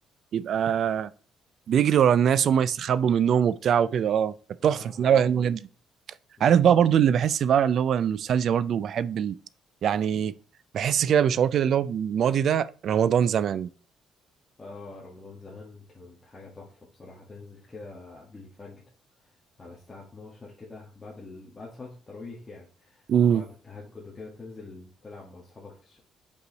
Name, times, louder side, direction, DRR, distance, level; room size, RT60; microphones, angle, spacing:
voice 1, 0.3-1.1 1.7-4.3 4.6-5.6 6.4-9.4 9.8-10.3 10.7-13.7 23.1-23.4, right 8 dB, 55° right, 0.4 m, -22 dB
voice 2, 4.6-5.4 6.4-6.7 14.6-18.8 19.2-19.3 19.6-26.0, left 3 dB, 15° left, 1.7 m, -45 dB
5.3 x 4.8 x 4.0 m
cardioid pair, 140°, 0 cm